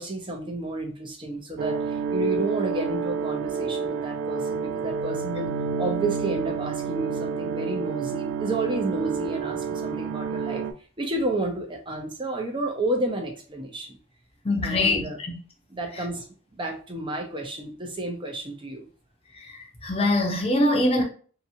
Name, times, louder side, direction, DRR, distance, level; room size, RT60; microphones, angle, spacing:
voice 1, 0.0-10.6 11.0-14.0 14.6-15.2 15.7-16.3 16.5-18.9, right 2 dB, 25° right, 0.6 m, -31 dB
sound 1, 1.6-10.7, right 6 dB, 75° right, 0.4 m, -29 dB
voice 2, 14.4-15.0 19.4-21.0, left 1 dB, 30° left, 0.7 m, -23 dB
2.7 x 2.6 x 2.7 m
head